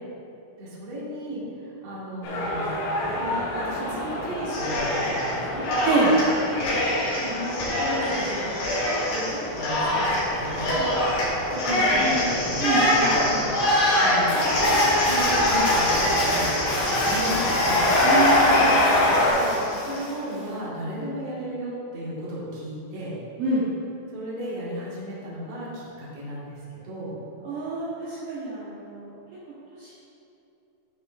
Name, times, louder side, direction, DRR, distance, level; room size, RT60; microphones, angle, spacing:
voice 1, 0.6-2.7 3.2-5.7 6.5-6.7 7.2-8.5 9.1-10.9 11.5-12.6 12.9-13.2 14.0-17.9 18.5-18.6 19.2-23.1 24.1-26.6 26.8-27.1, equal, 55° right, -7 dB, 1.9 m, -34 dB
sound 1, 2.2-19.3, left 1 dB, 80° left, 4.0 m, -27 dB
Cheering, 4.5-5.3 5.6-20.1, left 1 dB, 55° left, 3.2 m, -24 dB
voice 2, 11.9-12.3 12.6-13.5 18.0-18.8 23.4-23.6 27.4-29.1 29.8-29.9, right 3 dB, 80° right, -10 dB, 1.9 m, -27 dB
13.0 x 6.3 x 2.5 m, 2.8 s
omnidirectional pair, 5.7 m